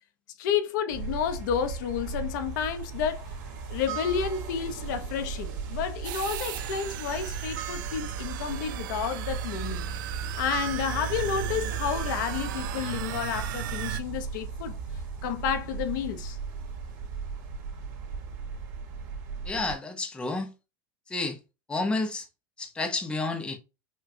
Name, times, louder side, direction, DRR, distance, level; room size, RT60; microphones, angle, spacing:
voice 1, 0.4-3.3 3.7-10.0 10.4-14.8 15.2-16.4, left 8 dB, 70° left, 0.7 m, -31 dB
sound 1, 0.9-19.7, right 5 dB, 60° right, 1.7 m, -36 dB
sound 2, 6.0-14.0, right 13 dB, 85° right, 0.4 m, -37 dB
voice 2, 19.5-20.5 21.1-21.4 21.7-22.3 22.6-23.6, left 3 dB, 10° left, 0.6 m, -30 dB
5.7 x 2.2 x 2.6 m
supercardioid pair, 155°, 10 cm